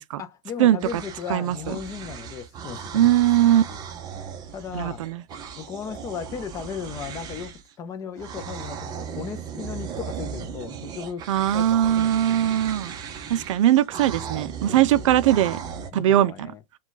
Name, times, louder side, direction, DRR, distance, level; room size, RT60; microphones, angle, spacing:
voice 1, 0.2-3.2 3.7-3.8 4.5-5.1 5.6-11.2 11.5-12.2 14.7-15.0 15.9-16.6, left 7 dB, 15° left, 0.5 m, -36 dB
sound 1, 0.8-7.7 8.2-15.9, right 7 dB, 20° right, 0.7 m, -37 dB
voice 2, 1.3-1.7 2.9-3.6 4.7-5.2 11.3-13.0 13.3-15.6 15.9-16.5, right 12 dB, 60° right, 0.5 m, -20 dB
4.8 x 2.3 x 3.9 m
supercardioid pair, 155°, 18 cm